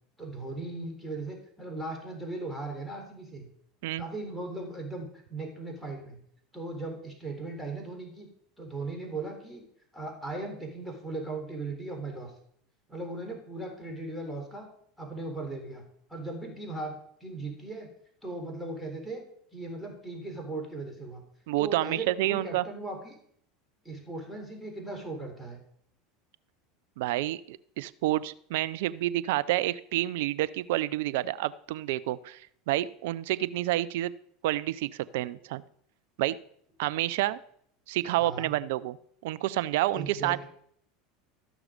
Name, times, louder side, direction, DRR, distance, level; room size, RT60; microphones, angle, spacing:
voice 1, 0.2-3.5 4.0-6.2 6.5-8.3 8.6-9.6 9.9-12.3 12.9-14.7 15.0-17.9 18.2-19.2 19.5-21.2 21.6-23.1 23.8-25.6 38.1-38.5 39.9-40.5, right 2 dB, ahead, 0 dB, 3.9 m, -38 dB
voice 2, 21.5-22.6 27.0-34.1 34.4-35.6 36.2-36.4 36.8-37.4 37.9-39.0 39.2-40.4, right 15 dB, 70° right, 16 dB, 0.5 m, -29 dB
13.5 x 6.1 x 5.1 m, 0.66 s
hypercardioid pair, 85°, 0 cm